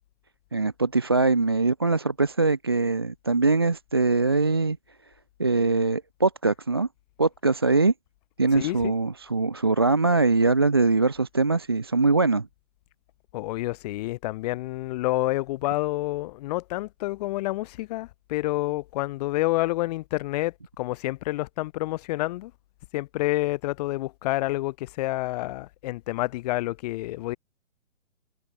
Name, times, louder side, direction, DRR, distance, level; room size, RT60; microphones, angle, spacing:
voice 1, 0.5-4.8 5.4-6.9 7.2-7.9 8.4-12.5, right 3 dB, 20° right, 0.3 m, -22 dB
voice 2, 8.5-8.9 13.3-22.5 22.9-27.4, left 18 dB, 30° left, 1.4 m, -28 dB
figure-of-eight pair, 130°, 39 cm